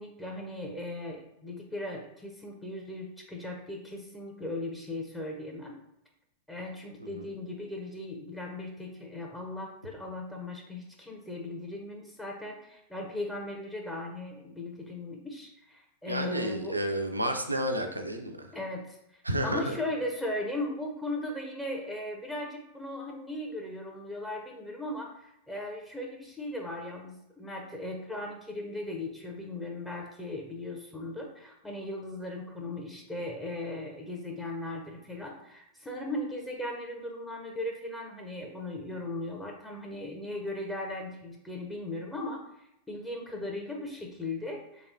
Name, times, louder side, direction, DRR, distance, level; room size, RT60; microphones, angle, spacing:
voice 1, 0.0-5.7 6.5-16.8 18.5-19.2 19.4-44.9, left 1 dB, 5° left, -1 dB, 0.5 m, -38 dB
voice 2, 16.1-18.5 19.2-19.8, right 1 dB, 85° right, 5 dB, 0.4 m, -31 dB
3.2 x 2.9 x 2.6 m, 0.81 s
figure-of-eight pair, 90°, 0 cm